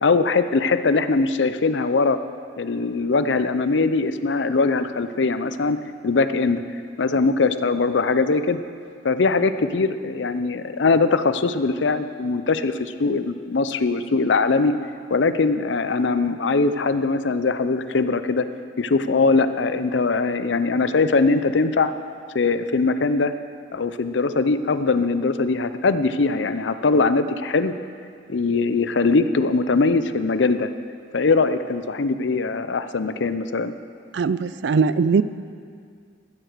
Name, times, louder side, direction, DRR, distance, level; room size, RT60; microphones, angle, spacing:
voice 1, 0.0-2.2 2.6-5.8 6.0-6.6 7.0-8.6 9.0-14.7 15.1-18.5 18.8-21.9 22.3-23.3 23.7-27.7 28.3-30.7 31.1-33.7, left 3 dB, 75° left, 11 dB, 0.6 m, -21 dB
voice 2, 34.1-35.2, right 5 dB, 70° right, 15 dB, 0.4 m, -20 dB
15.5 x 7.8 x 6.7 m, 2.2 s
head